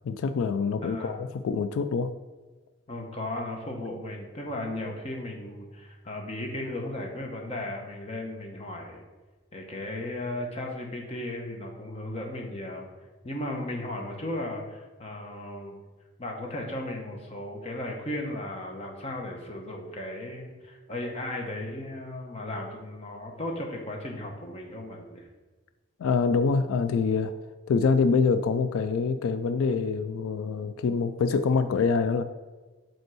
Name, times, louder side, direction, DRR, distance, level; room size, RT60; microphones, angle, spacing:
voice 1, 0.0-2.1 26.0-27.3 27.7-32.2, left 5 dB, 85° left, 10 dB, 0.3 m, -25 dB
voice 2, 0.8-1.3 2.9-9.0 9.5-12.9 13.2-15.8 16.2-25.3, left 1 dB, 30° left, 1 dB, 0.9 m, -36 dB
5.3 x 4.5 x 6.1 m, 1.3 s
head